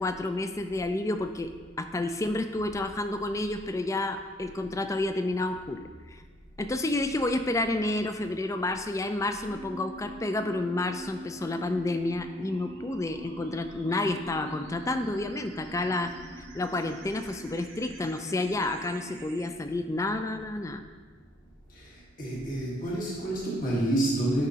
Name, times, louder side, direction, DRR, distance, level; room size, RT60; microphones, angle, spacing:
voice 1, 0.0-1.5 1.8-5.8 6.1-6.2 6.6-16.1 16.5-20.8, left 2 dB, 15° left, 8 dB, 0.3 m, -30 dB
sound 1, 9.5-19.5, right 1 dB, 65° right, 0.9 m, -45 dB
voice 2, 22.2-24.5, right 1 dB, 45° left, -5 dB, 1.4 m, -28 dB
9.7 x 5.0 x 2.8 m, 1.5 s
head